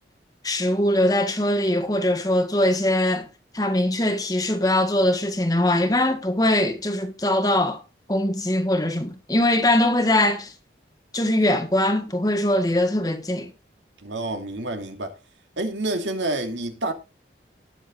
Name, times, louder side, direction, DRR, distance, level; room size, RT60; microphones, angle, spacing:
voice 1, 0.4-3.3 3.5-7.8 8.1-10.5 11.1-13.5, left 1 dB, 20° left, 1.7 m, -22 dB
voice 2, 14.0-15.1 15.6-16.9, right 2 dB, 85° right, 2.8 m, -28 dB
19.5 x 7.2 x 2.6 m
head